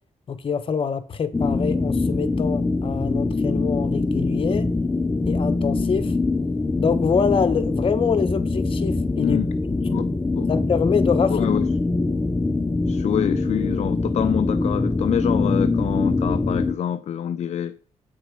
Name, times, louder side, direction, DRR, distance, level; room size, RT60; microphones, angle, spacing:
voice 1, 0.3-4.7 5.3-6.1 6.8-9.4 10.5-11.3, left 6 dB, 45° left, 1.2 m, -25 dB
sound 1, 1.3-16.7, left 3 dB, 15° left, 0.7 m, -23 dB
voice 2, 9.2-9.5 9.9-10.1 10.4-10.5 11.3-11.7 12.9-17.7, left 9 dB, 60° left, 0.5 m, -26 dB
8.5 x 6.4 x 5.2 m
cardioid pair, 130°, 13 cm